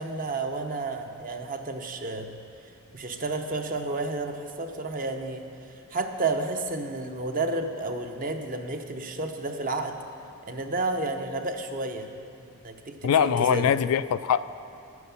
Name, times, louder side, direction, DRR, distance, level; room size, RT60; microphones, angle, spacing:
voice 1, 0.0-2.3 2.9-5.4 5.9-10.0 10.5-12.1 12.4-13.7, right 2 dB, 40° right, 5 dB, 0.8 m, -31 dB
voice 2, 13.0-14.4, left 8 dB, 70° left, 14 dB, 0.3 m, -22 dB
10.0 x 9.6 x 7.0 m, 2.5 s
head